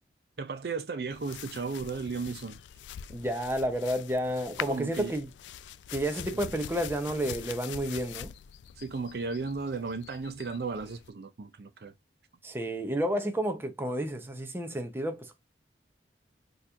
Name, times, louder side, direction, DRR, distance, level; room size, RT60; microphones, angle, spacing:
voice 1, 0.4-2.6 4.7-5.1 6.3-6.5 8.8-11.9, right 4 dB, 60° right, 0.5 m, -35 dB
sound 1, 1.1-11.1, left 9 dB, 85° left, 0.3 m, -44 dB
voice 2, 3.1-5.3 5.9-8.3 12.4-15.4, right 1 dB, 15° right, 0.6 m, -31 dB
3.9 x 2.8 x 2.4 m
head